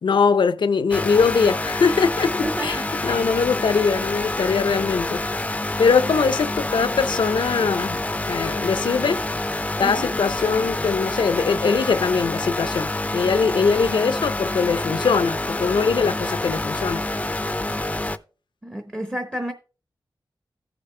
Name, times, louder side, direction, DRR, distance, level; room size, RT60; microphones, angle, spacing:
voice 1, 0.0-2.8 3.0-5.2 5.8-8.0 8.3-9.2 9.8-17.0, left 5 dB, 80° left, 0.6 m, -21 dB
sound 1, 0.9-18.2, left 2 dB, 15° left, 0.5 m, -27 dB
voice 2, 2.4-3.2 9.8-10.1 18.6-19.5, right 1 dB, 15° right, 0.8 m, -31 dB
15.0 x 5.1 x 3.2 m
wide cardioid pair, 80°, 8 cm